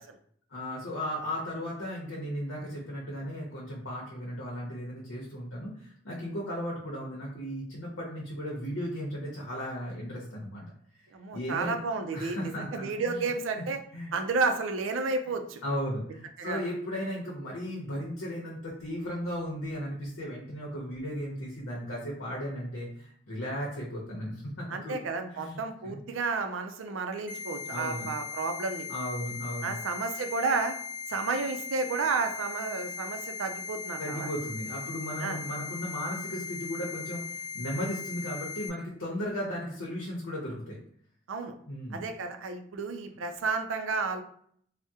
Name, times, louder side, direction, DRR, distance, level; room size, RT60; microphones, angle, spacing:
voice 1, 0.5-10.6 11.3-11.8 12.1-13.3 13.6-13.7 13.9-14.1 15.6-25.0 25.3-25.6 25.8-26.0 27.7-28.1 28.9-29.7 34.0-40.8 41.7-42.0, equal, 85° left, -3 dB, 0.8 m, -36 dB
voice 2, 11.1-13.8 14.1-15.6 16.4-16.7 24.7-28.9 29.6-30.7 31.1-34.3 35.2-35.4 41.3-41.5 41.9-44.2, right 4 dB, 80° right, 6 dB, 0.4 m, -31 dB
sound 1, 27.3-38.7, left 5 dB, 10° right, 0.4 m, -39 dB
3.5 x 2.1 x 2.7 m, 0.62 s
head